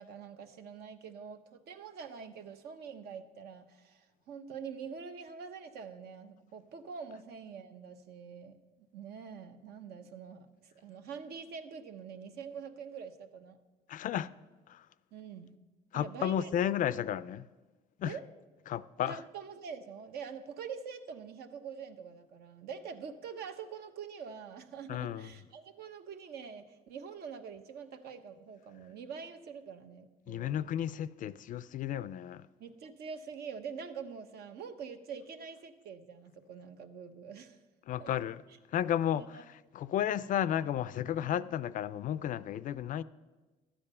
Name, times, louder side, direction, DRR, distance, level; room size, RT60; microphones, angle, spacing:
voice 1, 0.0-13.6 15.1-15.5 15.9-16.7 18.0-18.2 19.1-30.6 32.6-37.6 38.0-38.1 39.1-39.4 41.2-41.5, right 6 dB, 70° right, 1.0 m, -45 dB
voice 2, 13.9-14.3 14.7-14.8 15.9-17.5 18.0-18.2 18.7-19.2 24.9-25.3 30.3-32.4 37.9-38.4 38.7-39.4 39.7-43.0, left 10 dB, 50° left, 0.4 m, -33 dB
13.0 x 8.8 x 5.5 m
cardioid pair, 110°, 17 cm